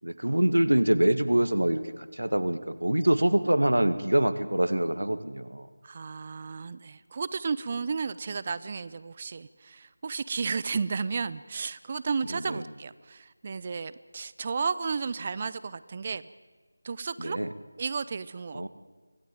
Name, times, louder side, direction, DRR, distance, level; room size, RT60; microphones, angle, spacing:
voice 1, 0.0-5.7 12.3-12.6 17.2-17.5 18.5-18.7, right 1 dB, 75° right, 11 dB, 1.8 m, -25 dB
voice 2, 5.8-16.2 16.8-17.4 17.8-18.7, right 5 dB, 25° right, 16 dB, 0.6 m, -33 dB
25.0 x 17.0 x 9.1 m, 1.3 s
figure-of-eight pair, 165°, 0 cm